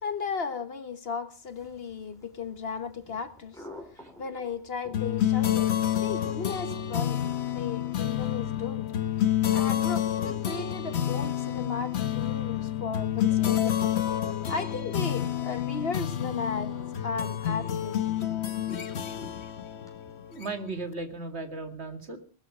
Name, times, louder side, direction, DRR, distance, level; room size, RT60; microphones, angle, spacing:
voice 1, 0.0-3.7 4.2-5.7 6.0-8.9 9.5-13.8 14.5-16.8 17.0-17.9 18.7-19.3, left 5 dB, 65° left, 1.5 m, -35 dB
sound 1, 1.4-20.7, left 1 dB, 5° left, 4.8 m, -54 dB
sound 2, 4.9-20.8, left 11 dB, 85° left, 1.3 m, -29 dB
voice 2, 20.3-22.2, right 3 dB, 85° right, 2.5 m, -36 dB
19.0 x 13.0 x 4.9 m
omnidirectional pair, 1.1 m